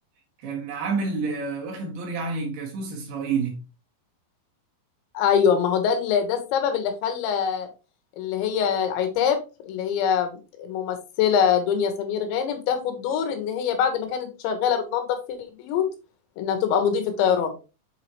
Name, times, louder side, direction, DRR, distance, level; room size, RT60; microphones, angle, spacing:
voice 1, 0.4-3.6, right 4 dB, 50° right, 3.2 m, -29 dB
voice 2, 5.1-7.7 8.2-9.4 9.6-15.9 16.4-17.5, left 7 dB, 75° left, 3.3 m, -24 dB
7.8 x 4.8 x 3.0 m
omnidirectional pair, 5.7 m